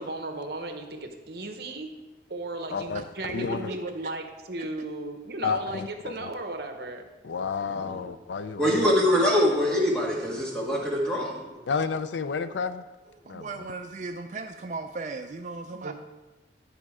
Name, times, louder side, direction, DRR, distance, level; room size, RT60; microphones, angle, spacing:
voice 1, 0.0-2.0 2.3-7.1 15.7-15.9, right 2 dB, 60° right, 5 dB, 0.9 m, -36 dB
voice 2, 2.7-3.7 5.4-6.3 7.2-8.9 11.7-12.8 13.3-13.5, left 5 dB, 85° left, 12 dB, 0.5 m, -31 dB
voice 3, 3.4-4.1 4.6-4.7 13.1-15.9, right 3 dB, 40° right, 5 dB, 0.4 m, -37 dB
voice 4, 7.7-8.0 8.6-11.6, equal, 5° left, -4 dB, 1.8 m, -24 dB
11.0 x 5.1 x 4.8 m, 1.1 s
head